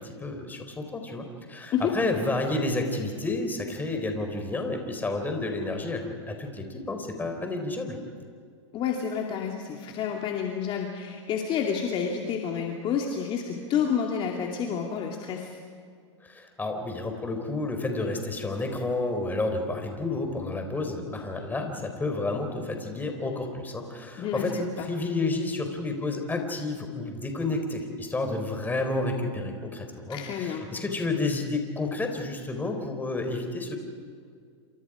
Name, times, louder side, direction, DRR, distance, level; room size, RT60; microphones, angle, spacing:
voice 1, 0.0-8.0 16.2-33.8, left 2 dB, 10° left, 4 dB, 4.2 m, -30 dB
voice 2, 8.7-15.6 24.2-24.9 30.1-30.7, left 7 dB, 35° left, 1 dB, 2.5 m, -29 dB
28.0 x 27.5 x 5.0 m, 2.2 s
hypercardioid pair, 120°, 16 cm